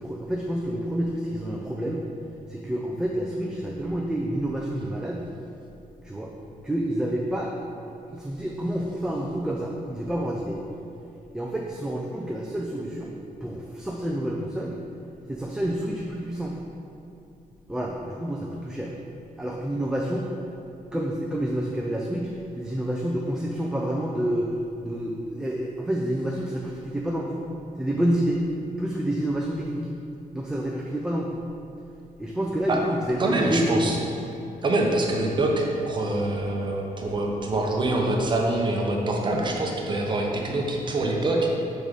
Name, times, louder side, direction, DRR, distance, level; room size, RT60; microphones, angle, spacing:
voice 1, 0.0-2.0 2.5-5.3 6.0-6.3 6.6-7.5 8.1-10.6 11.3-14.8 15.3-16.6 17.7-18.9 19.4-20.3 20.9-24.5 24.8-27.5 27.8-28.4 28.8-29.9 30.3-31.4 32.2-33.9, right 1 dB, 5° right, -2 dB, 0.3 m, -28 dB
voice 2, 33.2-34.0 34.6-41.5, right 2 dB, 35° right, 0 dB, 0.7 m, -25 dB
5.4 x 3.8 x 4.8 m, 2.7 s
wide cardioid pair, 175°, 15 cm